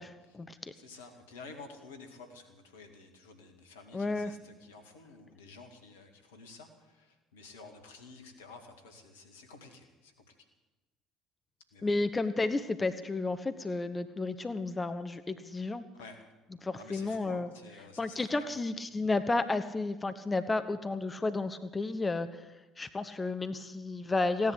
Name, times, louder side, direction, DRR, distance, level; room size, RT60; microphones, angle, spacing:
voice 1, 0.0-0.7 3.9-4.3 11.8-15.8 16.6-17.5 18.0-22.3 22.8-24.5, left 3 dB, 25° left, 11 dB, 1.0 m, -32 dB
voice 2, 0.7-10.3 11.7-11.9 15.9-16.3 16.8-18.6, left 3 dB, 80° left, 5 dB, 2.2 m, -51 dB
16.5 x 10.5 x 8.2 m, 1.1 s
hypercardioid pair, 55°, 0 cm